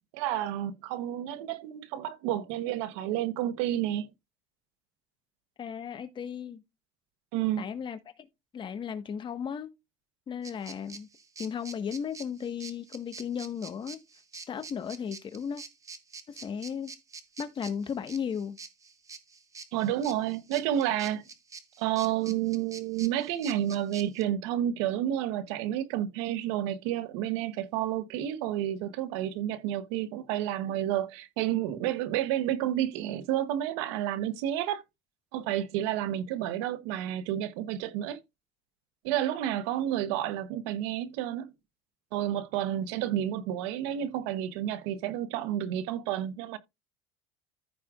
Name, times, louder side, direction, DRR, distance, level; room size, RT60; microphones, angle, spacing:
voice 1, 0.1-4.1 7.3-7.7 19.7-21.2 21.8-34.8 35.3-38.2 39.0-41.5 42.1-46.6, right 11 dB, 85° right, 1.0 m, -30 dB
voice 2, 5.6-6.6 7.6-8.0 8.5-9.7 10.3-11.1 11.4-14.0 14.5-15.6 16.3-16.9 17.4-18.6, left 7 dB, 35° left, 1.4 m, -35 dB
sound 1, 10.4-24.2, right 4 dB, 20° right, 1.1 m, -46 dB
14.5 x 4.8 x 2.4 m
supercardioid pair, 115°, 15 cm